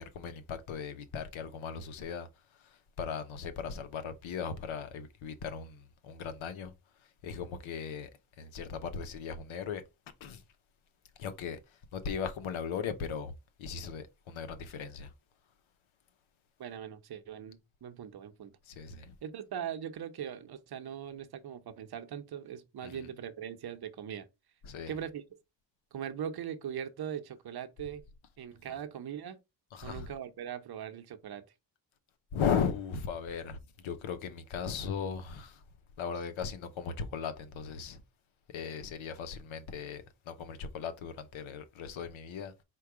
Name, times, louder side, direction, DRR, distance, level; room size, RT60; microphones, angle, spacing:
voice 1, 0.0-2.3 2.6-6.7 7.2-8.1 8.4-9.8 10.2-10.4 11.2-11.6 11.9-13.3 13.6-15.1 18.7-19.1 22.8-23.1 24.6-24.9 28.7-28.8 29.7-30.1 32.3-35.6 36.0-38.0 38.5-42.5, left 6 dB, 85° left, 0.9 m, -37 dB
voice 2, 16.6-18.5 19.2-24.3 24.9-25.2 25.9-28.0 28.4-29.4 29.8-31.4, right 9 dB, 55° right, 0.8 m, -40 dB
4.5 x 2.3 x 4.7 m
cardioid pair, 75°, 46 cm